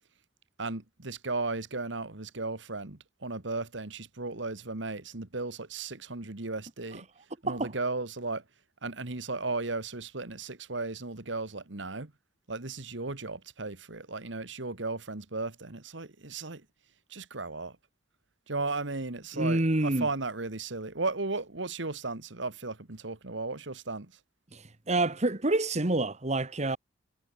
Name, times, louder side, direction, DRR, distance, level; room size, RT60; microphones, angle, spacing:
voice 1, 0.6-7.1 7.4-8.4 8.8-12.1 12.5-16.6 17.1-17.8 18.5-24.1, right 3 dB, 65° right, 1.8 m, -35 dB
voice 2, 19.3-20.1 24.5-26.8, right 2 dB, 35° right, 1.5 m, -28 dB
head